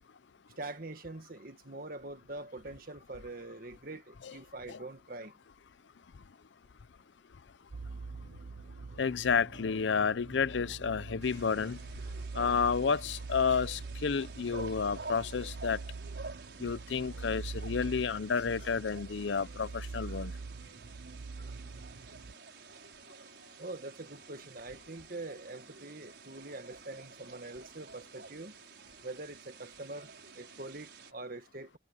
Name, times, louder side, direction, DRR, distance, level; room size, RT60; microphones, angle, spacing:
voice 1, 0.6-5.3 23.6-28.5 29.0-31.8, right 2 dB, 50° right, 1.9 m, -44 dB
sound 1, 7.7-22.3, right 3 dB, 90° right, 0.6 m, -44 dB
voice 2, 9.0-11.8 12.4-15.8 16.6-20.3, left 5 dB, 90° left, 0.6 m, -31 dB
sound 2, 11.2-31.1, right 4 dB, 70° right, 5.6 m, -50 dB
head